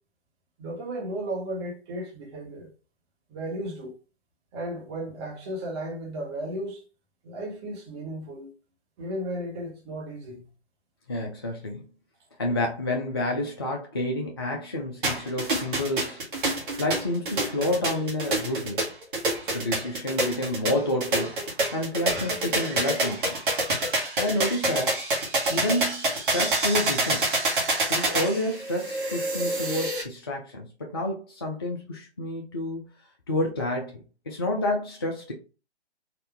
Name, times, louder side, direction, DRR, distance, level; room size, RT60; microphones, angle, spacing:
voice 1, 0.6-2.7 3.3-3.9 4.5-6.8 7.2-8.5 9.0-10.5, right 1 dB, 25° right, 1.1 m, -34 dB
voice 2, 11.1-11.9 12.4-16.2 16.8-18.8 19.5-21.4 21.7-23.4 24.2-25.0 25.5-27.3 27.9-32.8 33.3-35.3, left 1 dB, 25° left, 0.4 m, -29 dB
sound 1, 15.0-30.0, right 2 dB, 50° right, 1.4 m, -27 dB
4.0 x 2.6 x 3.3 m
figure-of-eight pair, 130°, 33 cm